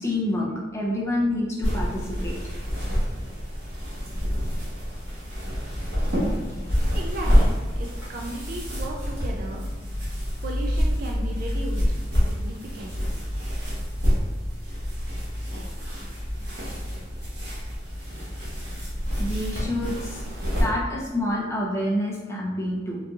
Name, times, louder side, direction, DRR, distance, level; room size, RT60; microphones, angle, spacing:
voice 1, 0.0-2.5 19.2-20.2 20.6-23.0, left 1 dB, 15° left, -3 dB, 0.5 m, -28 dB
sound 1, 1.6-20.6, equal, 75° right, 1.2 m, -27 dB
voice 2, 6.9-9.7 10.4-13.1, right 1 dB, 50° right, 0 dB, 0.3 m, -36 dB
3.8 x 2.6 x 2.4 m, 1.2 s
head